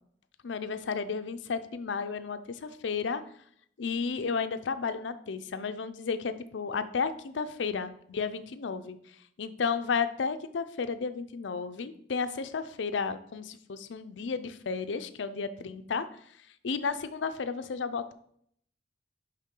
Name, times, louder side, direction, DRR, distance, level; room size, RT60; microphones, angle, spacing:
voice 1, 0.4-3.2 3.8-9.0 9.4-16.1 16.6-18.1, left 5 dB, 75° left, 11 dB, 0.5 m, -33 dB
9.9 x 3.6 x 3.8 m, 0.66 s
head